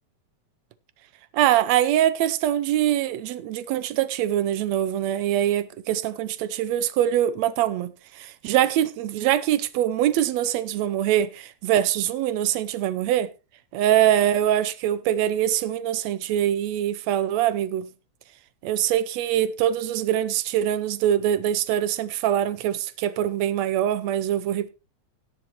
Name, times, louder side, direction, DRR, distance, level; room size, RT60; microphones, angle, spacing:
voice 1, 1.3-13.3 13.7-17.9 18.6-24.7, right 11 dB, 75° right, 1.8 m, -23 dB
17.0 x 8.3 x 3.0 m
omnidirectional pair, 3.4 m